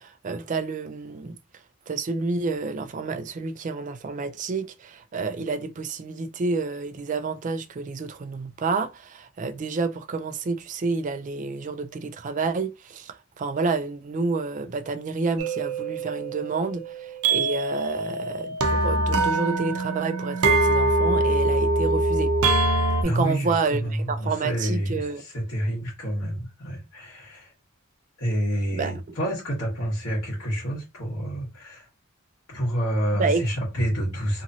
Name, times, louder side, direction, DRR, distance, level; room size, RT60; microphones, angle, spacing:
voice 1, 0.0-1.4 1.9-22.3 23.0-25.2 28.7-28.9 33.2-33.5, right 4 dB, 35° right, 0.3 m, -29 dB
sound 1, 15.4-23.0, right 2 dB, 80° right, 0.6 m, -23 dB
voice 2, 23.0-27.5 28.2-31.9 32.5-34.4, equal, 65° left, 1.4 m, -28 dB
3.0 x 2.6 x 2.6 m
head